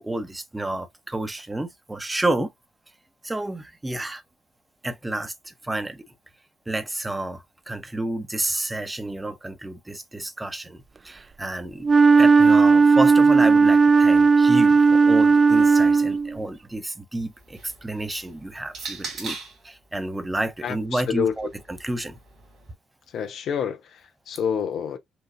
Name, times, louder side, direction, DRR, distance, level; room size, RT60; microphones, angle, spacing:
voice 1, 0.0-2.5 3.2-4.2 4.8-6.0 6.7-11.9 12.2-19.4 19.6-21.5 21.8-22.2, right 1 dB, 15° right, 0.9 m, -30 dB
Wind instrument woodwind instrument, 11.8-16.3, right 4 dB, 35° right, 0.3 m, -15 dB
sound 1, 17.2-19.7 20.6-22.7, right 4 dB, 60° right, 2.3 m, -40 dB
voice 2, 20.6-21.5 23.1-25.0, left 7 dB, 60° left, 0.6 m, -28 dB
6.0 x 2.5 x 2.5 m
figure-of-eight pair, 40°, 0 cm